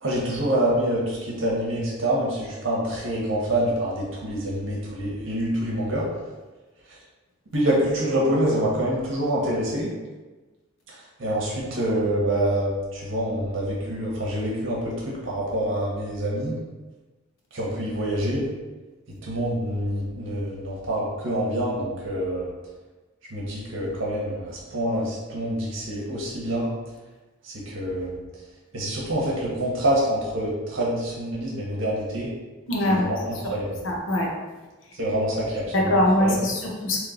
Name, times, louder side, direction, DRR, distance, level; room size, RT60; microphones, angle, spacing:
voice 1, 0.0-6.0 7.5-9.9 10.9-16.5 17.5-18.4 19.2-22.5 23.3-26.7 27.4-28.2 28.7-32.3 32.8-33.7 35.0-36.5, right 1 dB, 65° right, -4 dB, 0.9 m, -26 dB
voice 2, 32.7-33.1 33.8-34.3 35.7-37.0, left 1 dB, 70° left, -1 dB, 0.8 m, -22 dB
3.1 x 3.0 x 3.7 m, 1.2 s
head